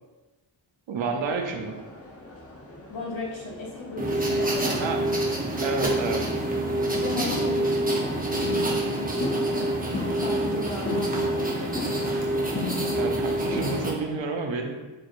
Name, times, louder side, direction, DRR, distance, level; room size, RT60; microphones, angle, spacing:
voice 1, 0.9-1.7 4.7-5.0 5.6-6.2 12.9-14.9, right 4 dB, 70° right, 4 dB, 0.6 m, -30 dB
sound 1, 1.2-14.2, left 2 dB, 30° left, 0.6 m, -38 dB
voice 2, 2.9-5.1 6.9-9.7 10.1-12.3, left 2 dB, 75° left, -2 dB, 1.0 m, -36 dB
sound 2, 4.0-13.9, right 1 dB, 20° right, 0.7 m, -26 dB
4.7 x 2.9 x 2.5 m, 1.1 s
wide cardioid pair, 65°, 47 cm